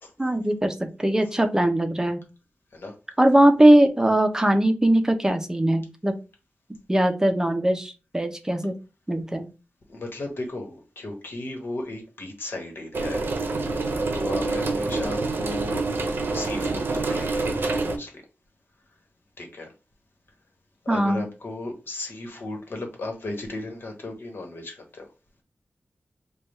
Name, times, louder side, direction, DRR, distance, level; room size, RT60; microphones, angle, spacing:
voice 1, 0.2-2.2 3.2-6.1 6.9-8.7 9.1-9.5 20.9-21.2, right 1 dB, 15° right, 6 dB, 0.5 m, -20 dB
voice 2, 9.9-13.3 13.6-13.7 14.1-15.8 16.3-17.5 17.8-18.2 19.4-19.7 20.8-25.1, left 2 dB, 75° left, 3 dB, 1.1 m, -35 dB
sound 1, 12.9-18.0, right 3 dB, 70° right, 0.6 m, -26 dB
3.4 x 2.3 x 4.1 m, 0.31 s
wide cardioid pair, 120°, 4 cm